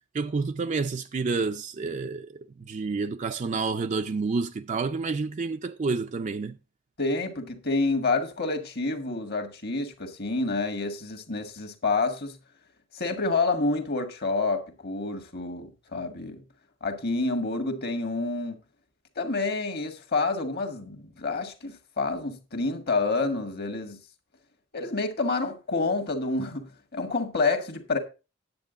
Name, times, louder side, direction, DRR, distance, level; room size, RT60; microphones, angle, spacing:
voice 1, 0.1-2.3 2.7-6.6, right 4 dB, 35° right, 0.4 m, -29 dB
voice 2, 7.0-12.4 12.9-16.4 16.8-18.6 19.2-24.0 24.7-28.0, left 3 dB, 50° left, 1.6 m, -28 dB
9.7 x 8.1 x 3.8 m
head